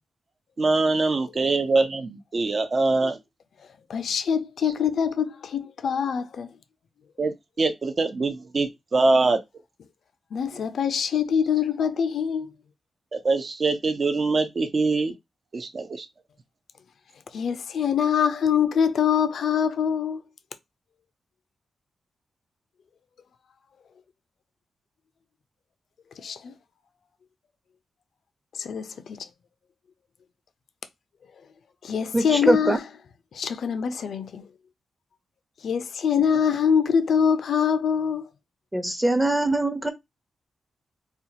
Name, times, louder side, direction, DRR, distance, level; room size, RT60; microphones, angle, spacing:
voice 1, 0.6-3.2 7.2-9.4 13.1-15.1 15.5-16.0, right 3 dB, 45° right, 0.7 m, -23 dB
voice 2, 3.9-6.5 10.3-12.5 17.3-20.2 26.2-26.5 28.6-29.2 31.8-32.8 33.3-34.4 35.6-38.3, left 7 dB, 75° left, 0.5 m, -24 dB
voice 3, 32.1-32.8 38.7-39.9, right 1 dB, 10° right, 0.8 m, -22 dB
4.2 x 2.4 x 2.8 m
cardioid pair, 100°, 0 cm